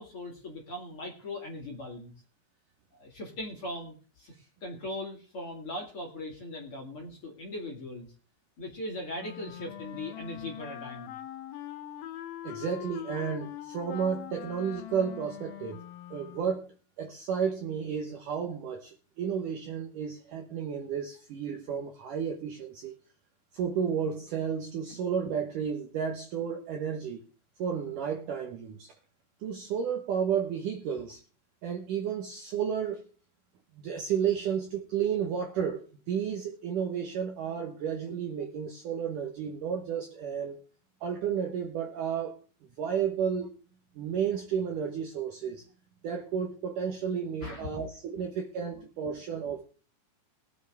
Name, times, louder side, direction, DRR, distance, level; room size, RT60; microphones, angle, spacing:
voice 1, 0.0-2.1 3.0-4.3 4.6-8.1 8.6-11.2 47.4-47.7, left 1 dB, 40° left, 2.6 m, -39 dB
Wind instrument woodwind instrument, 9.2-16.7, left 12 dB, 75° left, 2.3 m, -43 dB
voice 2, 12.4-15.8 16.1-23.0 23.5-27.2 27.6-28.9 29.4-31.2 31.6-33.0 33.8-40.6 41.0-42.4 42.8-43.5 44.0-45.6 46.0-49.6, right 7 dB, 65° right, 2.1 m, -32 dB
21.5 x 7.9 x 3.5 m
omnidirectional pair, 5.1 m